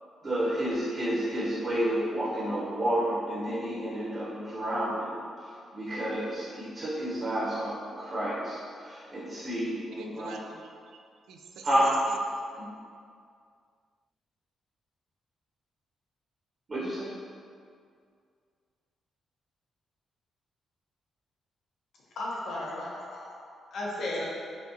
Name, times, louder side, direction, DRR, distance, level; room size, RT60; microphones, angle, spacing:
voice 1, 0.2-10.3 11.6-11.9 12.6-12.7 16.7-17.1, equal, 30° right, -8 dB, 0.8 m, -30 dB
voice 2, 10.0-11.0 11.3-12.4, right 5 dB, 80° right, 3 dB, 0.3 m, -45 dB
voice 3, 22.1-24.2, left 1 dB, 65° left, -5 dB, 0.9 m, -35 dB
5.8 x 2.4 x 2.7 m, 2.2 s
cardioid pair, 155°, 0 cm